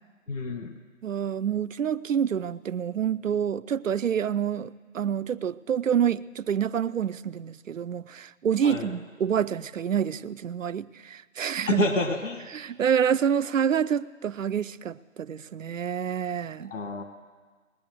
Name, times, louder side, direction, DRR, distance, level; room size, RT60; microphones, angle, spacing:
voice 1, 0.3-0.7 8.6-8.9 11.5-12.4 16.7-17.0, left 2 dB, 65° left, 1.5 m, -28 dB
voice 2, 1.0-11.8 12.5-16.7, right 8 dB, 70° right, 0.5 m, -27 dB
19.5 x 7.2 x 7.8 m
figure-of-eight pair, 155°, 40 cm